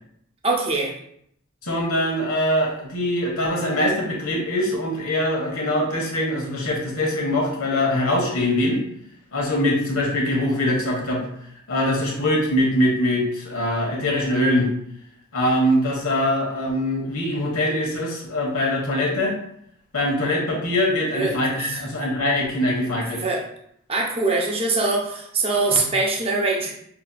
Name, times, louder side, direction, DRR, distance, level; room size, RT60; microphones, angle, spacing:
voice 1, 0.4-0.9 21.1-21.8 23.1-23.4 23.9-26.7, right 3 dB, 25° right, -1 dB, 0.6 m, -23 dB
voice 2, 1.6-8.8 9.3-11.3 11.7-14.7 15.3-19.3 19.9-23.2 25.7-25.9, left 1 dB, 75° left, -1 dB, 1.2 m, -23 dB
5.9 x 2.9 x 2.2 m, 0.70 s
head